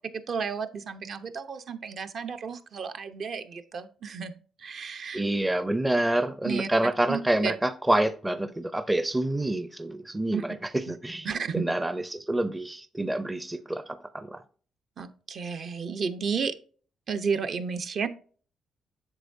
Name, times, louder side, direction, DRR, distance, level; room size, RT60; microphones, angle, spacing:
voice 1, 0.3-4.3 4.6-5.2 6.4-6.7 7.1-7.5 10.3-10.4 11.2-11.7 15.0-16.5 17.1-18.1, right 6 dB, 55° right, 0.8 m, -32 dB
voice 2, 5.1-14.4, right 1 dB, 10° right, 0.5 m, -27 dB
8.0 x 6.5 x 2.6 m
cardioid pair, 90°, 0 cm